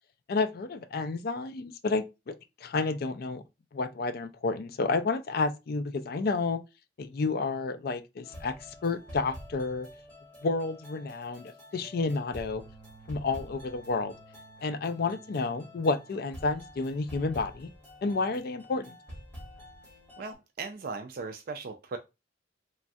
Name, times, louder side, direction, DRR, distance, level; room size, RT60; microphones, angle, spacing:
voice 1, 0.3-2.3 2.6-3.4 3.7-6.6 7.0-8.5 8.8-9.9 10.4-12.6 13.1-14.1 14.6-17.7 18.0-19.0, left 3 dB, 55° left, 0.4 m, -30 dB
sound 1, 8.2-20.4, equal, 10° left, 1.2 m, -48 dB
voice 2, 20.2-22.0, right 4 dB, 50° right, 0.3 m, -38 dB
3.2 x 2.3 x 2.5 m
head